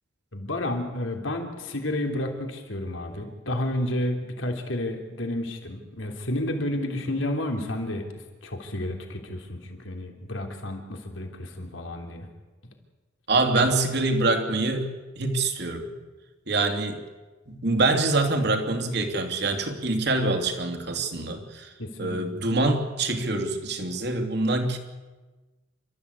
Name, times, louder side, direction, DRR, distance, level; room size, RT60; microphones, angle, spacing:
voice 1, 0.3-12.3 21.8-22.2, left 1 dB, 85° left, 3 dB, 3.3 m, -31 dB
voice 2, 13.3-15.9 16.5-17.0 17.5-21.7 22.0-24.8, right 2 dB, 60° right, 5 dB, 2.9 m, -25 dB
29.0 x 14.0 x 8.4 m, 1.2 s
head